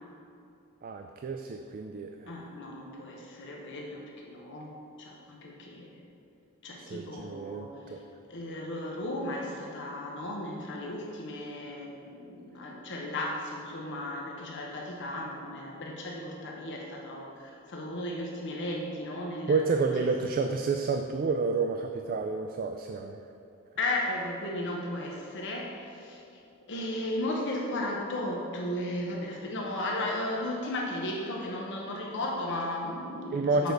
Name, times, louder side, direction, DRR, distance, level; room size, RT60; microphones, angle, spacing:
voice 1, 0.8-2.4 6.8-8.0 19.5-23.2 33.3-33.7, right 4 dB, 40° right, 5 dB, 0.3 m, -30 dB
voice 2, 2.3-4.7 5.0-6.0 6.6-7.7 8.3-19.8 23.8-26.2 26.7-33.7, left 1 dB, 55° left, -1 dB, 0.8 m, -35 dB
6.7 x 4.7 x 6.6 m, 2.6 s
head